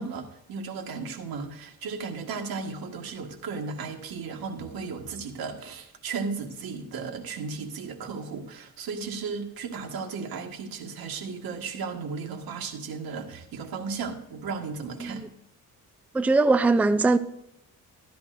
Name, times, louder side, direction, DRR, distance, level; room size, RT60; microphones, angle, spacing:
voice 1, 0.0-15.2, right 5 dB, 85° right, 1.7 m, -35 dB
voice 2, 16.1-17.2, right 3 dB, 5° right, 0.4 m, -21 dB
13.0 x 12.5 x 2.6 m
cardioid pair, 115°, 35 cm